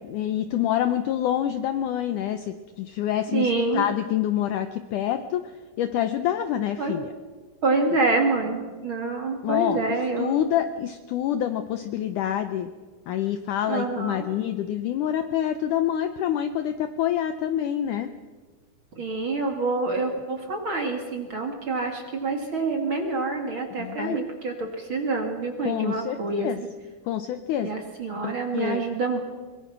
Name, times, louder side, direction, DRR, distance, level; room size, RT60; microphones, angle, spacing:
voice 1, 0.0-5.5 5.8-7.1 9.4-9.8 10.2-12.7 13.1-18.1 23.8-24.2 25.7-26.6 27.1-27.7 28.2-28.8, left 11 dB, 75° left, 9 dB, 1.9 m, -27 dB
voice 2, 3.3-3.9 6.8-7.0 7.6-10.3 13.7-14.3 19.0-26.5 27.6-29.2, right 3 dB, 40° right, 3 dB, 2.3 m, -27 dB
24.0 x 22.0 x 6.1 m, 1.4 s
omnidirectional pair, 4.4 m